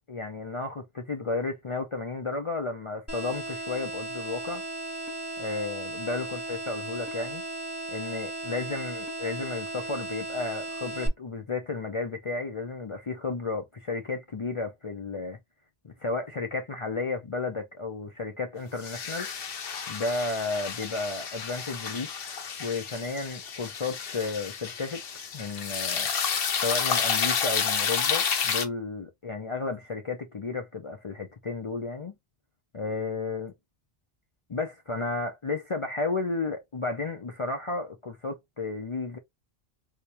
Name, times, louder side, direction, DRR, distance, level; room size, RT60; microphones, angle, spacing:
voice 1, 0.1-4.6 5.4-7.4 7.9-15.4 15.8-19.3 19.9-22.1 22.6-25.0 25.3-26.1 26.6-32.1 32.7-33.5 34.5-39.2, left 3 dB, 40° left, 0.5 m, -33 dB
sound 1, 3.1-11.1, right 2 dB, 15° left, 1.1 m, -36 dB
sound 2, 18.8-28.7, left 6 dB, 70° left, 0.9 m, -30 dB
3.4 x 2.9 x 2.8 m
omnidirectional pair, 1.0 m